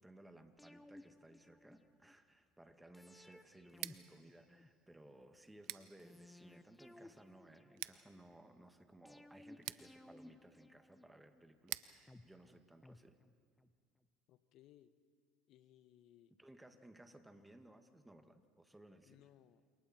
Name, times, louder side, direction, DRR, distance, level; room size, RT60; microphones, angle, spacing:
voice 1, 0.0-13.2 16.4-19.2, right 1 dB, 10° right, 7 dB, 2.0 m, -60 dB
sound 1, 0.6-2.2 2.9-5.1 6.0-8.2 9.1-11.4 12.1-13.7 14.0-14.1, left 1 dB, 10° left, 1.0 m, -60 dB
Scissors, 3.7-13.5, right 19 dB, 70° right, 0.7 m, -53 dB
voice 2, 14.3-15.0 15.5-16.4 19.0-19.7, left 12 dB, 60° left, 12 dB, 1.3 m, -65 dB
29.5 x 28.0 x 4.5 m, 2.1 s
supercardioid pair, 95°, 0 cm